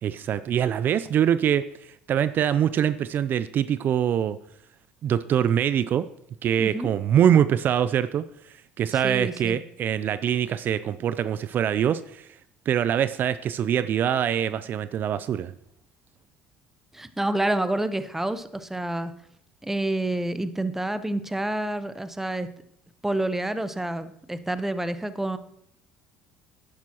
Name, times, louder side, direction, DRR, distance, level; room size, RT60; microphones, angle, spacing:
voice 1, 0.0-4.4 5.0-6.1 6.4-12.4 12.7-15.5, right 9 dB, 50° right, 15 dB, 0.4 m, -24 dB
voice 2, 6.6-6.9 9.0-9.6 16.9-19.1 19.6-22.5 23.0-25.4, right 1 dB, 10° right, 12 dB, 0.7 m, -28 dB
11.0 x 10.5 x 2.9 m, 0.70 s
hypercardioid pair, 75°, 4 cm